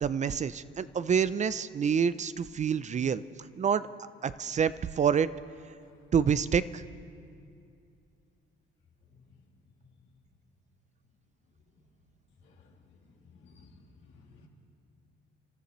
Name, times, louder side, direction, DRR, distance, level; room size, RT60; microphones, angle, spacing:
voice 1, 0.0-3.2 3.6-3.9 4.2-5.3 6.1-6.8, right 7 dB, 35° right, 15 dB, 0.4 m, -27 dB
voice 2, 12.4-13.7 14.0-14.5, left 4 dB, 80° left, -2 dB, 2.7 m, -57 dB
29.5 x 13.0 x 3.1 m, 2.4 s
cardioid pair, 90°, 20 cm